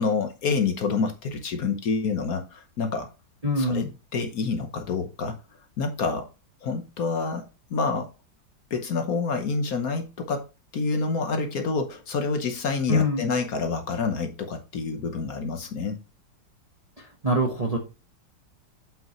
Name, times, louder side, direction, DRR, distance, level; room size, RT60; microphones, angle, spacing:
voice 1, 0.0-3.1 3.6-3.8 4.1-5.4 5.8-6.3 6.6-8.1 8.7-10.4 10.7-16.0, left 4 dB, 55° left, 6 dB, 1.3 m, -27 dB
voice 2, 3.4-3.9 12.9-13.2 17.2-17.8, equal, 30° right, 2 dB, 0.8 m, -23 dB
7.9 x 5.4 x 3.0 m, 0.31 s
omnidirectional pair, 2.0 m